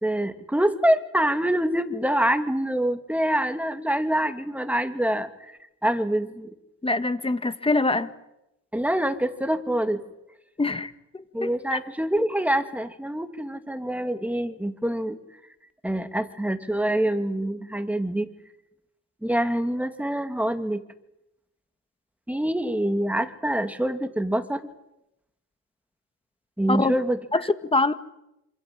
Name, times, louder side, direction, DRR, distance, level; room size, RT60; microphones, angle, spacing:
voice 1, 0.0-6.5 8.7-10.0 11.3-15.2 15.8-18.3 19.2-20.8 22.3-24.6 26.6-27.2, right 1 dB, 5° right, 8 dB, 2.4 m, -25 dB
voice 2, 6.8-8.1 10.6-10.9 11.4-11.8 26.7-27.0 27.3-27.9, left 2 dB, 20° left, 11 dB, 1.8 m, -24 dB
27.0 x 26.5 x 7.7 m, 0.89 s
cardioid pair, 90°, 30 cm